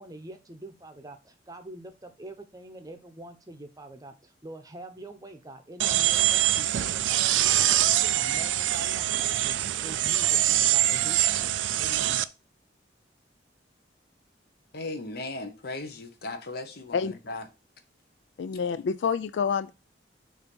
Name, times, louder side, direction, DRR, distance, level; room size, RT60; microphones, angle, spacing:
voice 1, 0.0-7.2 7.4-9.6 9.8-12.2, right 1 dB, 20° right, 0.7 m, -45 dB
sound 1, 5.8-12.2, right 13 dB, 90° right, 0.4 m, -24 dB
voice 2, 14.7-17.4, left 2 dB, 60° left, 0.9 m, -37 dB
voice 3, 18.4-19.7, left 6 dB, 75° left, 0.4 m, -27 dB
6.9 x 2.7 x 5.3 m
head